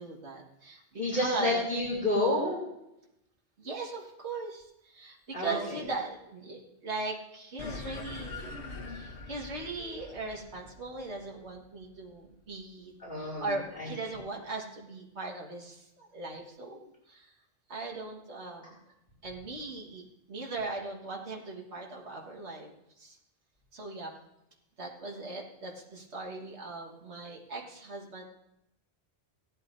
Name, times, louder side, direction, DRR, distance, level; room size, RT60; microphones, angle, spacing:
voice 1, 0.0-1.6 3.6-8.5 8.9-17.3 17.7-18.8 19.2-22.7 23.0-23.2 23.7-24.1 24.8-28.2, right 3 dB, 80° right, -1 dB, 1.9 m, -39 dB
voice 2, 1.0-2.6 5.3-5.6 13.0-13.5 13.8-13.9, left 2 dB, 45° left, -5 dB, 2.9 m, -29 dB
sound 1, 7.6-12.4, left 3 dB, 75° left, 1.3 m, -43 dB
17.0 x 12.0 x 2.7 m, 0.85 s
omnidirectional pair, 1.1 m